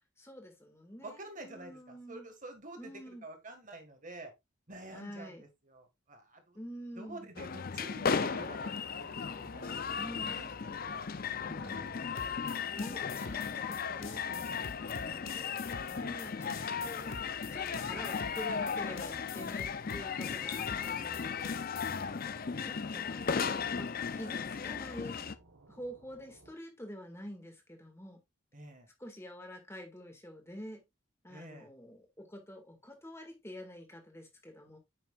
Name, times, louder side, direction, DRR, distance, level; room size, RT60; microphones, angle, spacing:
voice 1, 0.2-2.3 2.8-3.2 4.9-5.4 6.6-7.3 10.0-10.5 11.6-11.9 12.8-16.5 16.8-17.2 17.5-21.7 22.6-25.2 25.7-28.2 29.0-30.8 31.2-34.8, equal, 15° left, 1.9 m, -47 dB
voice 2, 1.0-4.3 4.7-6.6 7.0-10.0 10.3-10.5 10.8-11.2 11.4-11.7 17.7-17.9 22.2-22.7 28.5-28.9 31.3-31.7, right 2 dB, 40° right, 1.8 m, -49 dB
sound 1, 7.4-25.4, left 6 dB, 45° left, 0.5 m, -36 dB
sound 2, 8.4-26.5, right 2 dB, 70° right, 1.2 m, -61 dB
sound 3, 12.2-22.0, left 5 dB, 70° left, 0.9 m, -47 dB
9.1 x 6.0 x 2.4 m
head